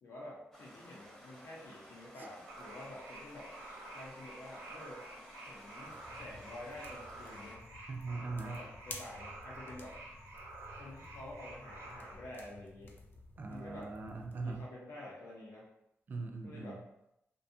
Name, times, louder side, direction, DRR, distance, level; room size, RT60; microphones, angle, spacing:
voice 1, 0.0-3.5 3.9-5.0 5.4-7.6 8.4-10.0 10.8-12.9 13.5-14.0 14.4-15.7 16.4-16.8, left 1 dB, 85° left, -4 dB, 0.7 m, -49 dB
Stream, 0.5-7.6, equal, 5° left, 0.6 m, -56 dB
sound 1, 2.5-12.2, right 2 dB, 90° right, 0.7 m, -50 dB
sound 2, 5.9-14.7, left 3 dB, 45° left, 0.3 m, -53 dB
voice 2, 7.9-8.6 13.4-14.7 16.1-16.8, right 3 dB, 40° right, 4 dB, 0.3 m, -40 dB
2.6 x 2.3 x 2.6 m, 0.83 s
wide cardioid pair, 135°, 5 cm